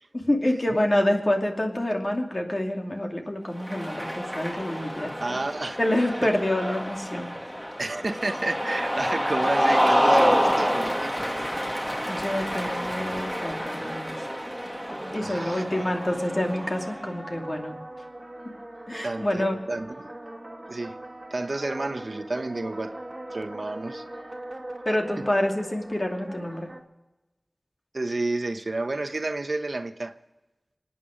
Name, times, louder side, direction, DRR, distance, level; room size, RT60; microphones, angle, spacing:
voice 1, 0.1-5.4 5.8-7.3 12.1-14.1 15.1-17.8 18.4-18.5 18.9-19.5 24.8-26.7, left 1 dB, 45° left, 2.6 m, -27 dB
Cheering, 3.6-17.0, equal, 10° left, 2.1 m, -27 dB
voice 2, 5.2-5.8 7.8-11.2 15.2-15.6 19.0-20.1 20.7-21.0 21.3-22.9 23.3-24.0 25.2-25.3 27.9-30.2, right 2 dB, 75° right, 0.9 m, -30 dB
sound 1, 8.2-26.8, right 1 dB, 30° right, 1.9 m, -41 dB
26.5 x 9.5 x 5.1 m
wide cardioid pair, 45°, 0 cm